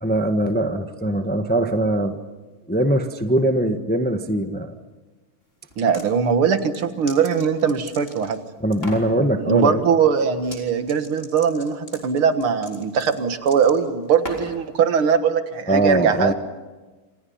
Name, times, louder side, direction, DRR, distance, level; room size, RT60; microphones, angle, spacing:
voice 1, 0.0-2.2 2.7-4.7 8.6-9.8 15.7-16.3, right 1 dB, 5° left, 6 dB, 1.0 m, -21 dB
sound 1, 5.7-6.1 6.6-8.4 8.7-9.1 10.4-10.6 10.9-14.6, left 1 dB, 25° left, 4.1 m, -38 dB
voice 2, 5.8-8.4 9.4-16.3, right 6 dB, 75° right, 9 dB, 2.3 m, -21 dB
28.0 x 27.5 x 5.7 m, 1.3 s
omnidirectional pair, 2.4 m